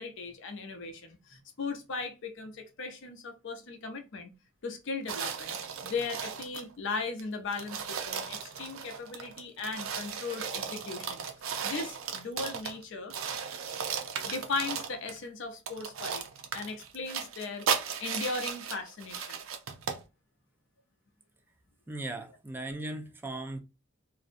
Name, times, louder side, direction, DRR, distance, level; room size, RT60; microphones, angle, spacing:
voice 1, 0.0-4.3 4.6-11.2 11.6-13.1 14.2-16.2 16.5-17.7 18.0-19.4, left 4 dB, 65° left, 0.5 m, -37 dB
sound 1, 5.1-6.7 7.2-7.3 7.5-12.8 13.1-15.2 15.7-20.0, right 7 dB, 75° right, 0.5 m, -36 dB
voice 2, 21.9-23.6, right 2 dB, 10° right, 0.3 m, -38 dB
2.5 x 2.0 x 2.5 m
head